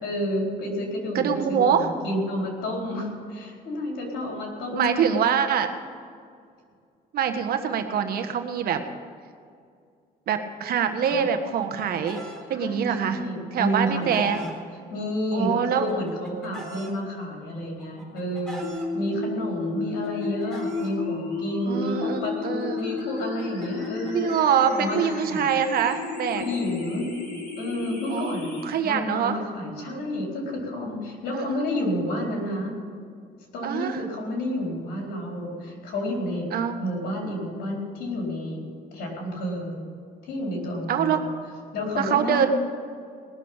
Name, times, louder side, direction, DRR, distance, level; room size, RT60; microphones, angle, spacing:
voice 1, 0.0-5.1 11.1-11.3 12.5-14.5 14.9-24.3 24.6-25.4 26.3-27.1 27.6-28.6 28.8-32.8 33.5-36.5 36.8-38.6 38.9-39.8 40.3-41.3 41.7-42.5, left 1 dB, 80° left, -1 dB, 4.4 m, -30 dB
voice 2, 1.1-1.9 4.7-5.7 7.1-8.8 10.3-12.2 12.5-13.2 13.5-14.4 15.3-15.9 16.5-16.6 21.7-22.8 24.1-26.4 28.1-29.4 29.8-30.1 31.3-31.7 33.6-34.0 36.5-36.8 40.9-41.2 42.0-42.5, right 8 dB, 65° right, 7 dB, 1.4 m, -24 dB
Chicken rooster, 11.3-12.4 13.5-14.5 15.5-16.9 17.8-18.9 19.9-20.9 22.0-25.4, equal, 5° left, 3.7 m, -42 dB
sound 1, 18.6-28.6, left 4 dB, 50° left, 5.0 m, -32 dB
19.0 x 6.9 x 8.8 m, 2.2 s
cardioid pair, 110°, 17 cm